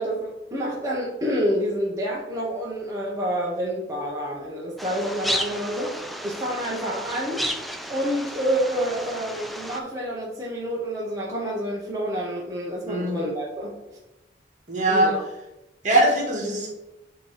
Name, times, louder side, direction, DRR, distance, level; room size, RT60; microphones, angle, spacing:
voice 1, 0.0-7.5 7.9-14.0 14.9-15.2, equal, 15° right, -5 dB, 0.9 m, -28 dB
sound 1, 4.8-9.8, equal, ahead, 0.4 m, -32 dB
voice 2, 12.8-13.2 14.7-15.2 15.8-16.7, right 1 dB, 40° right, 0 dB, 1.8 m, -21 dB
8.1 x 3.0 x 4.9 m, 0.95 s
head